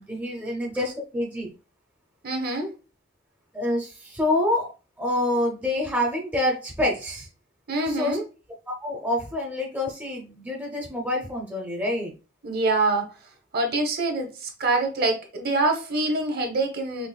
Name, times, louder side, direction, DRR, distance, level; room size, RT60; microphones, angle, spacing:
voice 1, 0.0-1.5 3.5-4.7 5.0-7.3 7.9-8.2 8.8-12.1, left 1 dB, 10° right, 0.5 m, -27 dB
voice 2, 2.2-2.7 7.7-8.2 12.4-13.1 13.5-17.1, right 2 dB, 50° right, 0.8 m, -25 dB
4.0 x 2.9 x 2.2 m
head